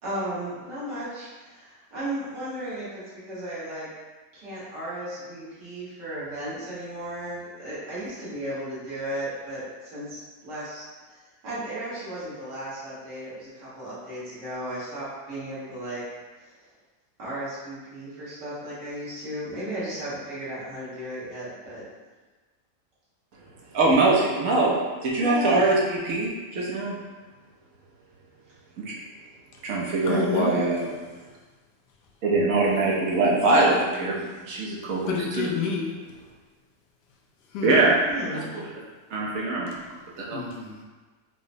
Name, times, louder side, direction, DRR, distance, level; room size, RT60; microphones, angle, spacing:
voice 1, 0.0-3.9 4.3-10.8 11.1-16.0 17.2-21.8 25.2-25.6 38.1-38.5, right 1 dB, 85° right, -10 dB, 1.9 m, -35 dB
voice 2, 23.7-24.8 25.0-27.0 28.8-28.9 29.6-30.8 32.2-35.5 37.6-37.9 38.3-38.6 39.1-39.7 40.2-40.4, right 2 dB, 65° right, -4 dB, 0.9 m, -23 dB
voice 3, 30.0-30.6 31.1-31.2 32.0-32.1 35.1-36.2 37.4-37.9 39.7-39.8 40.3-40.8, left 4 dB, 80° left, -1 dB, 1.2 m, -30 dB
4.8 x 2.0 x 2.6 m, 1.3 s
omnidirectional pair, 1.8 m